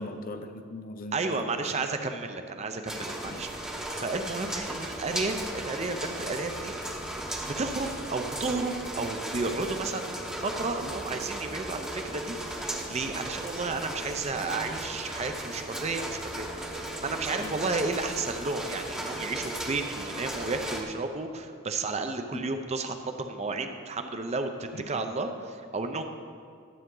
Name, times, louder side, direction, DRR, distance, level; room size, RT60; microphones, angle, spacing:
voice 1, 0.0-1.9 3.2-3.6 17.4-17.7 22.3-22.6 24.7-25.1, left 2 dB, 45° left, 0.6 m, -41 dB
voice 2, 1.1-3.5 3.9-6.7 7.1-7.2 7.4-26.0, right 3 dB, 35° right, 0.6 m, -32 dB
sound 1, 2.9-20.8, right 1 dB, 5° right, 0.9 m, -36 dB
12.5 x 7.9 x 3.8 m
head